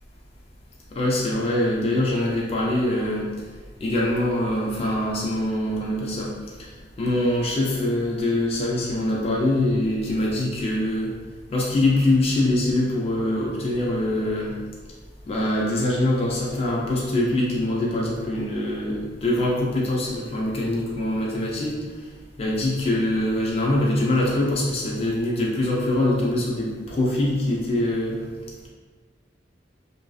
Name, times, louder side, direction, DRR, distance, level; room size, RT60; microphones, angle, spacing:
voice 1, 1.0-3.3 3.8-6.3 7.0-11.1 11.5-14.6 15.3-21.7 22.4-28.2, left 1 dB, 30° left, -4 dB, 0.3 m, -23 dB
2.5 x 2.3 x 2.3 m, 1.4 s
head